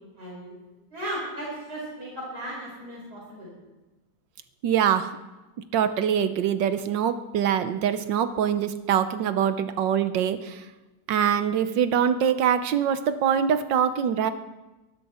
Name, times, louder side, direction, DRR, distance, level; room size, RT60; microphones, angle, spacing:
voice 1, 0.2-0.6 0.9-3.5, right 1 dB, 60° right, -5 dB, 5.1 m, -36 dB
voice 2, 4.6-5.1 5.7-10.6 11.1-14.3, right 8 dB, 80° right, 11 dB, 1.5 m, -24 dB
23.5 x 12.5 x 4.3 m, 1.1 s
omnidirectional pair, 2.0 m